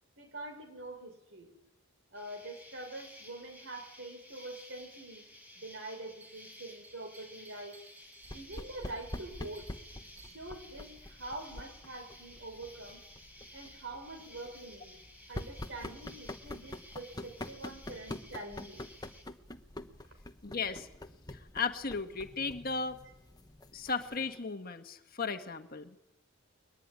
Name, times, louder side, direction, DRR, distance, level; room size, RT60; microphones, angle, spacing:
voice 1, 0.2-1.5 2.1-5.2 5.5-7.8 8.3-9.7 10.2-13.0 13.5-15.0 15.3-18.8, right 2 dB, 60° right, 6 dB, 5.7 m, -45 dB
Insect, 2.1-19.2, left 1 dB, 10° right, 4.5 m, -54 dB
Bell, 6.2-10.7, right 4 dB, 30° right, 6.9 m, -61 dB
sound 1, 8.2-24.4, left 1 dB, 20° left, 1.0 m, -46 dB
voice 2, 20.4-20.9 21.3-23.0 23.7-25.9, left 4 dB, 45° left, 7 dB, 1.5 m, -36 dB
22.0 x 19.0 x 10.0 m, 0.87 s
head